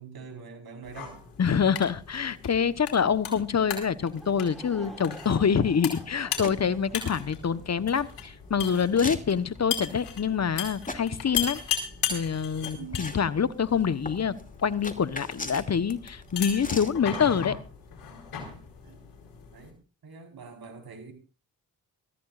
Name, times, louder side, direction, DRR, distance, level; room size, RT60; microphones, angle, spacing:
voice 1, 0.0-1.2 12.6-13.0 18.8-19.2 19.5-21.1, right 5 dB, 65° right, 4.7 m, -45 dB
sound 1, 0.8-19.7, left 8 dB, 80° left, 4.6 m, -38 dB
voice 2, 1.4-11.6 12.1-17.6, left 7 dB, 40° left, 1.2 m, -26 dB
Laughter / Crowd, 4.0-8.2, equal, ahead, 7.0 m, -48 dB
sound 2, 6.4-17.0, left 2 dB, 20° left, 2.7 m, -42 dB
23.0 x 14.5 x 2.5 m
supercardioid pair, 45°, 40 cm